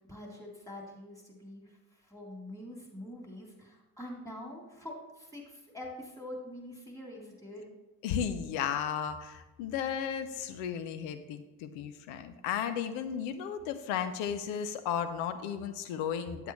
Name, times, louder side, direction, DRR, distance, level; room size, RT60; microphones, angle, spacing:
voice 1, 0.0-7.7, left 1 dB, 5° left, -2 dB, 3.1 m, -45 dB
voice 2, 8.0-16.5, left 8 dB, 70° left, 10 dB, 0.8 m, -34 dB
8.8 x 7.9 x 3.2 m, 1.1 s
figure-of-eight pair, 45°, 47 cm